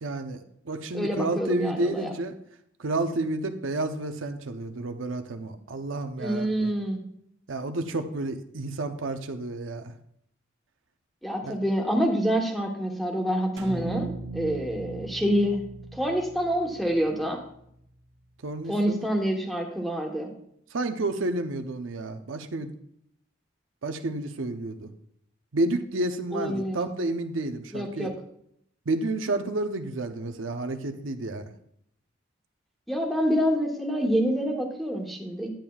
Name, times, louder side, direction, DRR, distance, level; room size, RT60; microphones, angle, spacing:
voice 1, 0.0-2.3 2.8-6.7 7.5-9.9 11.4-11.6 18.4-19.0 20.7-22.7 23.8-24.9 25.5-28.1 28.9-31.5, right 2 dB, 85° right, 7 dB, 0.7 m, -30 dB
voice 2, 0.9-2.1 6.2-7.0 11.2-15.6 15.9-17.4 18.7-20.3 26.3-26.8 27.7-28.1 32.9-35.5, equal, ahead, 1 dB, 1.0 m, -27 dB
sound 1, 13.6-17.8, right 3 dB, 65° right, 1.3 m, -38 dB
10.0 x 8.9 x 2.3 m, 0.71 s
head